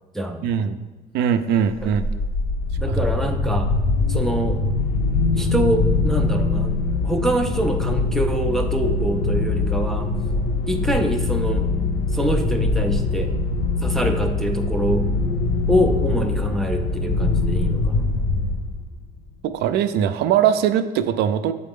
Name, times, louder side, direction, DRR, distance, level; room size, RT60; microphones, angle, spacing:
voice 1, 0.4-0.9 1.1-2.0 2.9-3.0 19.4-21.5, right 9 dB, 70° right, 10 dB, 0.4 m, -21 dB
sound 1, 1.7-19.0, left 3 dB, 60° left, 0.6 m, -23 dB
voice 2, 2.8-3.7 4.1-4.7 5.3-6.8 7.0-10.1 10.7-11.7 12.1-13.4 13.8-15.1 15.7-18.1, equal, ahead, 3 dB, 0.3 m, -25 dB
7.5 x 4.0 x 3.6 m, 1.3 s
cardioid pair, 170°, 17 cm